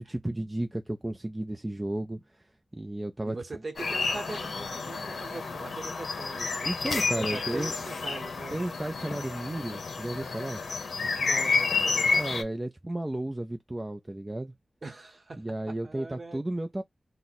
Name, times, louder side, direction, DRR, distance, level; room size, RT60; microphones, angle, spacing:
voice 1, 0.0-2.5 2.7-3.4 6.6-7.7 8.5-10.6 12.2-14.5 15.4-16.8, right 1 dB, 15° right, 0.3 m, -33 dB
voice 2, 3.2-6.6 7.1-8.6 11.2-12.2 14.8-16.4, right 3 dB, 45° right, 0.8 m, -41 dB
sound 1, 3.8-12.4, left 4 dB, 90° left, 0.6 m, -30 dB
2.6 x 2.0 x 4.0 m
wide cardioid pair, 120°, 0 cm